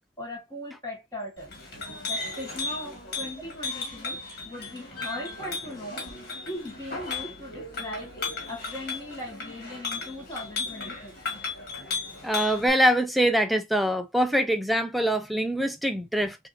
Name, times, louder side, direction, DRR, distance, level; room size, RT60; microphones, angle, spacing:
voice 1, 0.2-1.5 2.0-4.2 4.4-6.1 6.4-8.1 8.5-11.2, left 1 dB, 15° left, 1.6 m, -39 dB
Chink clink, 1.4-12.7, left 4 dB, 50° left, 2.0 m, -35 dB
voice 2, 12.2-16.4, equal, ahead, 0.5 m, -24 dB
6.2 x 2.6 x 2.6 m
head